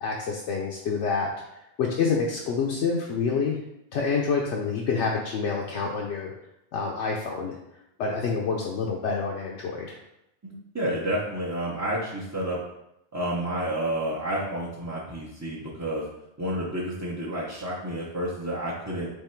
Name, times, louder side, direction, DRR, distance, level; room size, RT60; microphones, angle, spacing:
voice 1, 0.0-3.6 3.9-6.3 6.7-7.5 8.0-10.0, left 5 dB, 75° left, -1 dB, 0.9 m, -27 dB
voice 2, 10.4-12.6 13.1-16.0 16.4-19.1, right 1 dB, 20° right, -6 dB, 0.5 m, -30 dB
3.7 x 3.1 x 4.3 m, 0.84 s
omnidirectional pair, 1.2 m